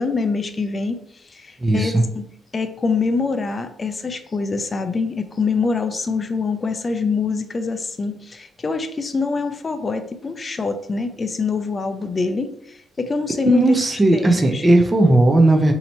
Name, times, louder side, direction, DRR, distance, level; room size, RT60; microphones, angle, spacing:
voice 1, 0.0-2.3 2.5-13.6 14.1-14.6, left 4 dB, 35° left, 8 dB, 0.4 m, -25 dB
voice 2, 1.6-2.0 13.5-15.7, right 2 dB, 20° right, 3 dB, 0.5 m, -16 dB
2.9 x 2.7 x 4.2 m, 0.72 s
cardioid pair, 90°, 0 cm